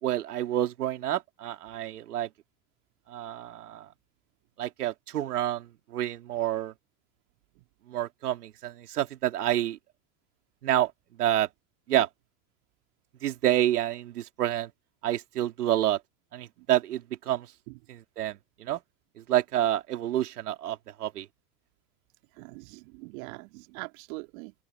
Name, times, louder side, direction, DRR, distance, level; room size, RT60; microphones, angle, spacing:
voice 1, 0.0-2.3 3.1-3.9 4.6-6.7 7.9-9.8 10.6-10.9 11.2-11.5 11.9-12.1 13.2-14.7 15.0-16.0 16.3-17.5 17.9-18.8 19.2-21.3, right 12 dB, 80° right, 3.8 m, -28 dB
voice 2, 22.4-24.5, right 28 dB, 60° right, 3.1 m, -42 dB
open air
hypercardioid pair, 85°, 45 cm